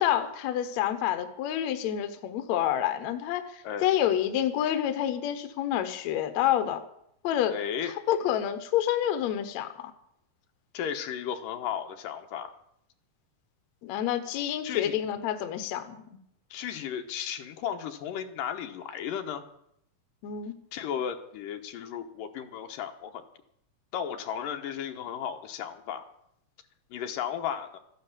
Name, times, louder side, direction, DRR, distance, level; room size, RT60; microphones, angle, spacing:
voice 1, 0.0-6.8 7.2-7.6 8.1-9.9 13.8-16.0 20.2-20.5, left 11 dB, 65° left, 10 dB, 2.1 m, -28 dB
voice 2, 7.5-7.9 10.7-12.5 14.6-15.0 16.5-19.4 20.7-23.2 23.9-26.0 26.9-27.8, left 8 dB, 90° left, 6 dB, 2.8 m, -34 dB
13.5 x 10.5 x 7.3 m, 0.74 s
omnidirectional pair, 3.8 m